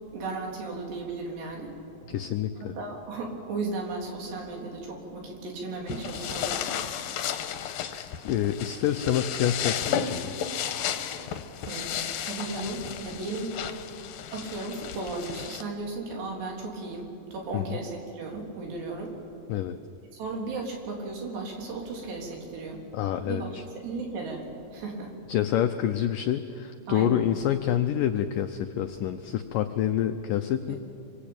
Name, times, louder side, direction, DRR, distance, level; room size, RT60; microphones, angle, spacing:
voice 1, 0.1-1.8 2.0-2.2 2.6-6.6 11.6-13.5 14.3-19.2 20.1-22.8 23.2-24.4 24.7-25.1 26.9-27.2, right 3 dB, 75° right, 0 dB, 5.8 m, -35 dB
voice 2, 2.1-2.7 7.7-10.3 17.5-17.8 19.5-19.8 22.9-23.6 25.3-30.8, left 10 dB, 85° left, 8 dB, 1.9 m, -27 dB
sound 1, 5.9-15.6, left 9 dB, 65° left, 2.4 m, -33 dB
26.0 x 24.5 x 8.9 m, 2.6 s
omnidirectional pair, 4.9 m